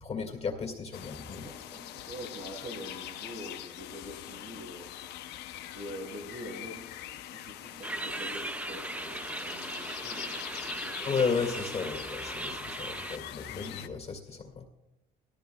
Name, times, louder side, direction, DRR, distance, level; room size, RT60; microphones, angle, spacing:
voice 1, 0.0-1.5 11.0-14.7, left 5 dB, 40° left, 3 dB, 2.0 m, -33 dB
sound 1, 0.9-13.9, left 12 dB, 85° left, 0.7 m, -43 dB
voice 2, 1.4-5.2 5.7-11.1 12.4-12.6, equal, 75° right, -1 dB, 4.5 m, -45 dB
sound 2, 7.8-13.2, right 2 dB, 10° right, 0.3 m, -38 dB
17.5 x 13.5 x 2.3 m, 0.93 s
cardioid pair, 110°, 17 cm